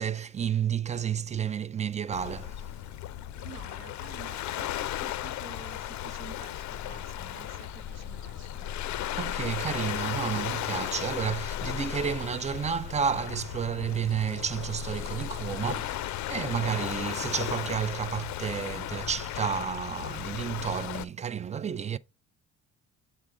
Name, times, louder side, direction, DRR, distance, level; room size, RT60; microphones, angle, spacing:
voice 1, 0.0-2.6 9.2-22.0, right 7 dB, 25° right, 0.3 m, -31 dB
Waves surf, 2.1-21.0, left 12 dB, 70° left, 0.5 m, -35 dB
voice 2, 3.4-8.8, right 8 dB, 60° right, 0.8 m, -50 dB
sound 1, 6.8-11.2, left 1 dB, ahead, 1.1 m, -56 dB
7.7 x 3.7 x 4.9 m
cardioid pair, 90°, 30 cm